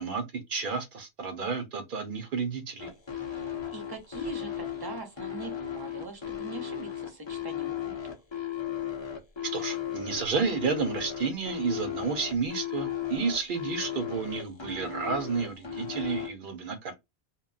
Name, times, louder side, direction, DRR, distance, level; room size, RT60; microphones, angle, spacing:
voice 1, 0.0-2.9 9.5-16.9, right 5 dB, 60° right, 0.7 m, -31 dB
sound 1, 2.8-16.3, left 9 dB, 30° left, 0.6 m, -35 dB
voice 2, 3.3-8.2, right 2 dB, 25° right, 0.7 m, -42 dB
2.2 x 2.1 x 3.7 m
omnidirectional pair, 1.1 m